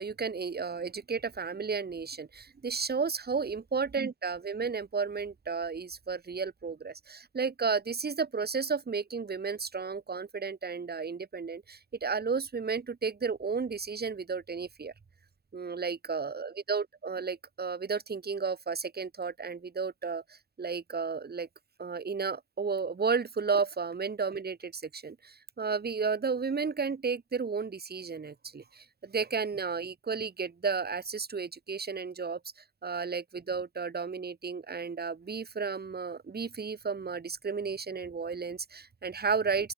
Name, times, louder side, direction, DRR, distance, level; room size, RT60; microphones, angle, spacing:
voice 1, 0.0-14.9 15.5-21.5 21.8-32.4 32.8-39.7, right 5 dB, 30° right, 3.8 m, -33 dB
open air
cardioid pair, 90°, 30 cm